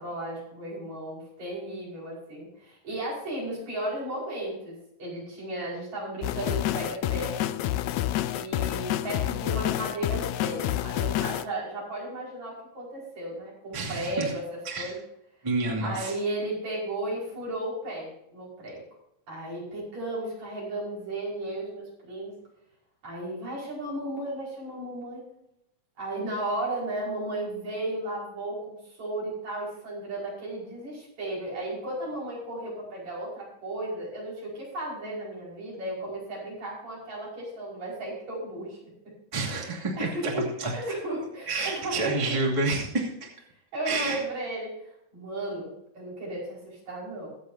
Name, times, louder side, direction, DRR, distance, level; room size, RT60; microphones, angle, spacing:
voice 1, 0.0-4.7 5.0-7.5 8.3-15.0 15.8-18.8 19.3-22.3 23.0-25.2 26.0-38.8 39.5-42.4 43.7-47.3, right 1 dB, 60° right, -5 dB, 6.5 m, -34 dB
sound 1, 6.2-11.4, left 13 dB, 80° left, 1.9 m, -28 dB
voice 2, 13.7-14.3 14.6-14.9 15.4-16.2 39.3-40.3 40.6-40.7 41.5-43.3 43.8-44.2, right 3 dB, 10° right, -2 dB, 2.1 m, -29 dB
23.0 x 7.9 x 2.8 m, 0.80 s
omnidirectional pair, 3.6 m